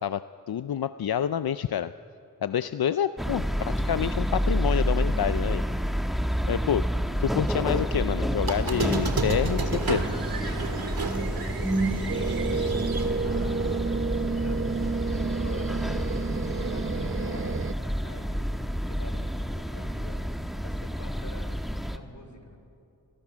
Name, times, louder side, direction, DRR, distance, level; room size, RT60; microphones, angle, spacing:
voice 1, 0.0-1.9 2.4-5.6 6.5-6.9 7.2-10.1, left 9 dB, 85° left, 12 dB, 0.5 m, -28 dB
sound 1, 3.2-22.0, equal, ahead, 1.4 m, -29 dB
Squeak, 8.4-13.8, right 4 dB, 90° right, 1.8 m, -32 dB
voice 2, 11.0-12.9 13.2-15.0 15.3-15.9 16.2-18.4 18.7-20.3 20.6-21.6 21.9-22.6, left 2 dB, 50° left, 5 dB, 3.8 m, -46 dB
sound 2, 12.1-17.7, right 4 dB, 35° right, 0.5 m, -30 dB
29.5 x 21.5 x 6.2 m, 2.7 s
wide cardioid pair, 45°, 36 cm